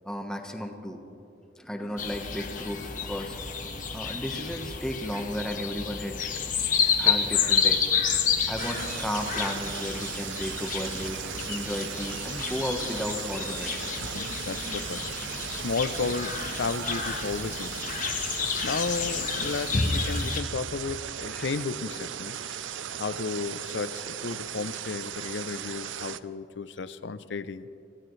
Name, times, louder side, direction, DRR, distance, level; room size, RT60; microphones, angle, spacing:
voice 1, 0.0-1.0 1.6-3.4 3.9-6.2 7.0-7.9 8.5-11.2 11.5-13.9 21.3-21.5 22.4-22.8, equal, 5° left, 3 dB, 1.1 m, -34 dB
sound 1, 2.0-20.4, left 6 dB, 45° left, 1.3 m, -30 dB
sound 2, 8.6-26.2, right 9 dB, 80° right, 0.5 m, -37 dB
voice 2, 14.0-17.8 18.6-22.4 23.0-27.8, left 4 dB, 70° left, 14 dB, 0.5 m, -33 dB
26.0 x 16.0 x 3.2 m, 2.8 s
head